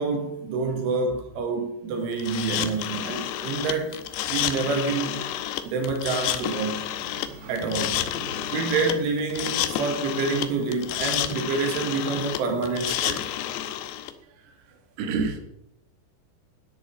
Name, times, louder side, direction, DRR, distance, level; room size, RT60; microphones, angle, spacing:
voice 1, 0.0-4.0 4.3-5.2 5.6-6.9 7.5-8.0 8.5-13.3, right 4 dB, 90° right, 4.6 m, -27 dB
sound 1, 2.2-14.1, left 11 dB, 80° left, 2.7 m, -30 dB
voice 2, 7.0-8.7 14.4-14.5 15.0-15.4, right 4 dB, 65° right, 3.5 m, -33 dB
13.5 x 10.0 x 5.4 m
omnidirectional pair, 5.4 m